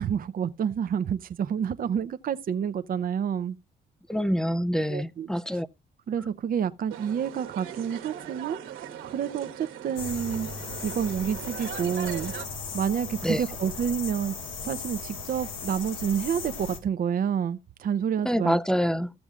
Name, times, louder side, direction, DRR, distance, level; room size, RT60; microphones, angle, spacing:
voice 1, 0.0-3.6 4.9-5.6 6.1-8.6 9.1-10.5 10.8-12.3 12.7-14.3 14.6-18.6, right 8 dB, 45° right, 0.6 m, -29 dB
voice 2, 4.1-5.7 13.2-13.4 18.2-19.1, equal, 5° left, 0.4 m, -26 dB
sound 1, 6.9-12.5, right 10 dB, 90° right, 1.3 m, -40 dB
sound 2, 10.0-16.8, left 5 dB, 85° left, 1.7 m, -37 dB
14.5 x 6.9 x 2.5 m
cardioid pair, 90°, 20 cm